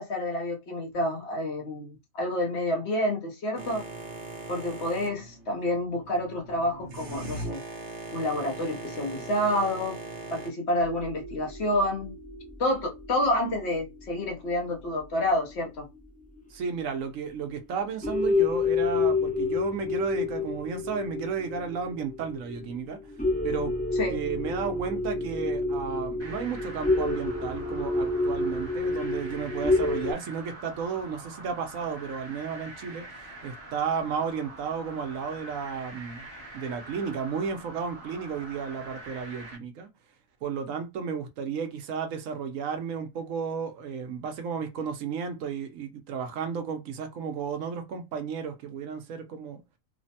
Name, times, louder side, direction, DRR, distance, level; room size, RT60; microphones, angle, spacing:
voice 1, 0.0-3.8 4.5-7.6 8.1-10.0 10.3-12.1 12.6-15.9 24.0-24.2, left 1 dB, 60° left, 0.9 m, -28 dB
Boat Water vehicle, 3.6-10.5, right 2 dB, 55° right, 0.9 m, -40 dB
sound 1, 10.8-14.7 15.2-15.3 16.3-16.4 17.0-17.1 17.5-17.7 18.0-30.1, left 3 dB, 10° left, 0.4 m, -29 dB
voice 2, 16.5-23.0 23.4-23.8 24.1-36.3 36.5-39.9 40.4-49.6, right 6 dB, 75° right, 1.0 m, -33 dB
sound 2, 26.2-39.6, right 1 dB, 20° right, 1.1 m, -45 dB
3.2 x 2.1 x 2.7 m
omnidirectional pair, 1.4 m